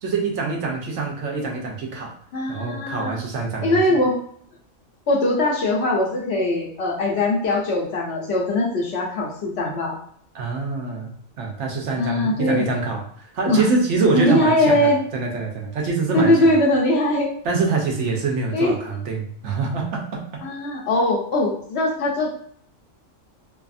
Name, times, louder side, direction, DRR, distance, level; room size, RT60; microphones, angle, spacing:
voice 1, 0.0-2.1 2.5-4.0 10.3-13.0 13.3-16.6 17.4-20.4, right 4 dB, 70° right, 0 dB, 0.9 m, -25 dB
voice 2, 2.3-3.2 3.6-4.2 5.1-10.0 12.0-12.6 13.5-13.6 14.1-15.0 16.1-17.3 18.5-18.7 20.4-22.3, left 1 dB, 65° left, -2 dB, 0.9 m, -21 dB
2.7 x 2.4 x 2.4 m, 0.62 s
omnidirectional pair, 1.3 m